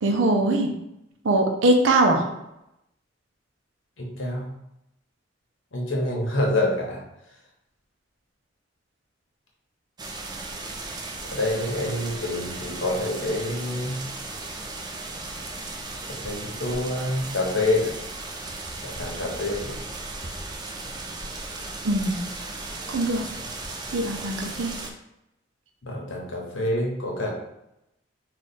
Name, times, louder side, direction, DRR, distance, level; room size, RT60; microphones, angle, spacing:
voice 1, 0.0-0.7 1.2-2.2 21.8-22.2 22.9-23.3 23.9-24.7, right 2 dB, 80° right, 3 dB, 0.6 m, -21 dB
voice 2, 4.0-4.5 5.7-7.0 11.3-14.0 16.1-17.9 18.8-19.8 25.8-27.3, left 1 dB, 85° left, -1 dB, 0.9 m, -27 dB
sound 1, 10.0-24.9, right 2 dB, 20° right, 0.4 m, -36 dB
3.3 x 2.4 x 4.1 m, 0.85 s
head